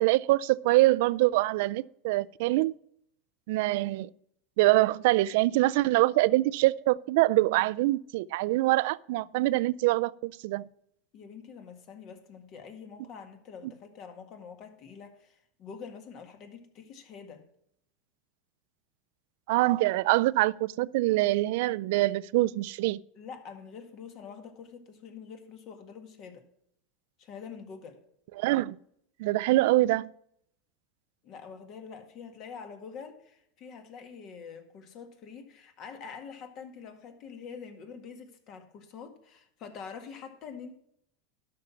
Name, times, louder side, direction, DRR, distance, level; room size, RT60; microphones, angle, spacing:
voice 1, 0.0-2.7 3.5-4.1 4.6-10.7 19.5-23.0 28.4-28.8 29.2-30.1, right 18 dB, 70° right, 0.3 m, -24 dB
voice 2, 11.1-17.4 23.1-26.4 27.2-28.0 31.2-40.8, left 6 dB, 45° left, 1.8 m, -45 dB
12.0 x 6.0 x 5.8 m
supercardioid pair, 140°, 0 cm